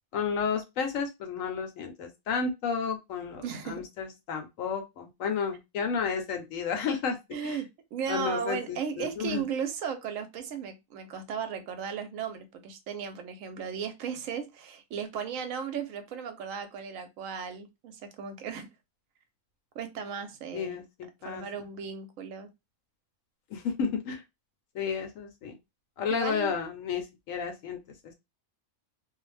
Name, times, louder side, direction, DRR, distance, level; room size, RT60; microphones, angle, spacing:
voice 1, 0.1-7.6 8.1-9.4 20.5-20.8 21.2-21.4 23.5-24.2 24.7-25.5 26.0-27.8, left 6 dB, 70° left, 5 dB, 1.0 m, -32 dB
voice 2, 3.4-3.8 7.3-18.7 19.7-20.8 21.2-22.5 26.1-26.5, right 7 dB, 75° right, 8 dB, 0.9 m, -36 dB
2.5 x 2.0 x 3.2 m, 0.22 s
omnidirectional pair, 1.5 m